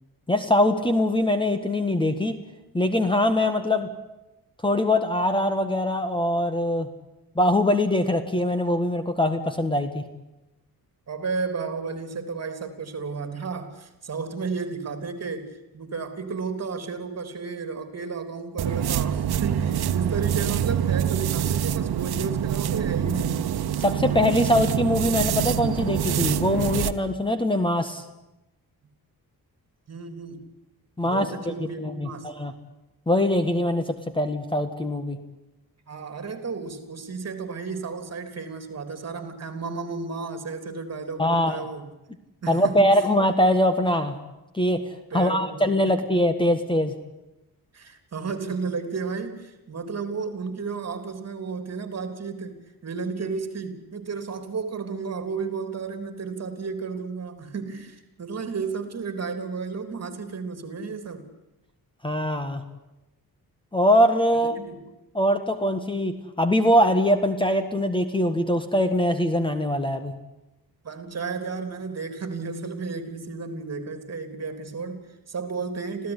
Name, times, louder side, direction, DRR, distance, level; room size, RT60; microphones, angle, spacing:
voice 1, 0.3-2.3 2.7-3.9 4.6-6.9 7.3-10.1 23.8-28.0 31.0-31.3 31.8-32.5 33.1-35.2 41.2-41.6 42.5-44.2 44.5-44.8 45.1-46.9 62.0-62.6 63.7-64.6 65.1-70.1, left 1 dB, 15° left, 9 dB, 1.6 m, -22 dB
voice 2, 11.1-23.4 29.9-30.5 31.0-32.3 35.9-41.9 42.4-43.0 45.1-45.9 47.7-61.3 64.3-64.9 70.8-76.1, right 4 dB, 45° right, 9 dB, 3.5 m, -33 dB
sound 1, 18.6-27.0, right 9 dB, 85° right, 1.1 m, -25 dB
26.5 x 16.5 x 10.0 m, 0.99 s
wide cardioid pair, 150°, 37 cm